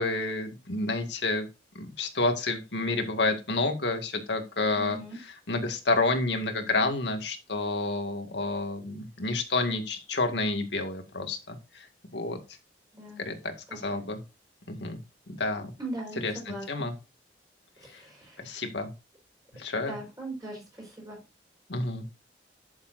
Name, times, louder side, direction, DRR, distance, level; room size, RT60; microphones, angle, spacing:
voice 1, 0.0-1.5 1.8-11.9 12.1-12.4 13.2-14.2 14.7-15.0 15.3-15.7 16.2-16.9 17.9-18.0 18.4-18.9 19.5-20.0 21.7-22.1, left 2 dB, 85° left, 6 dB, 2.0 m, -29 dB
voice 2, 4.8-5.2 12.9-13.2 13.7-14.1 15.8-16.9 17.8-18.4 19.8-21.2, right 2 dB, 20° right, -2 dB, 4.8 m, -40 dB
11.5 x 7.3 x 2.6 m, 0.27 s
head